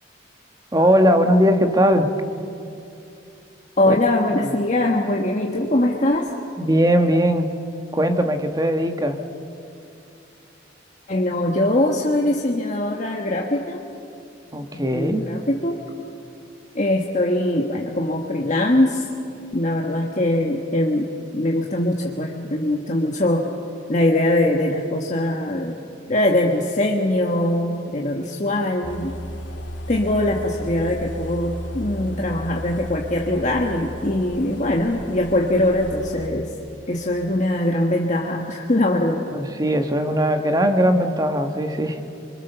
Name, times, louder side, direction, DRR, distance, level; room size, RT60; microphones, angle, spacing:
voice 1, 0.7-2.1 3.9-4.0 6.6-7.5 7.9-9.2 14.5-15.2 39.3-42.0, equal, 20° right, 6 dB, 1.5 m, -19 dB
voice 2, 3.8-6.3 11.1-13.8 14.7-15.8 16.7-19.1 19.5-23.5 23.9-25.8 26.1-29.1 29.9-36.5 36.9-39.3, left 1 dB, 40° left, 0 dB, 1.5 m, -22 dB
sound 1, 28.8-36.3, equal, 75° left, 2.5 m, -34 dB
25.5 x 25.5 x 7.0 m, 2.6 s
head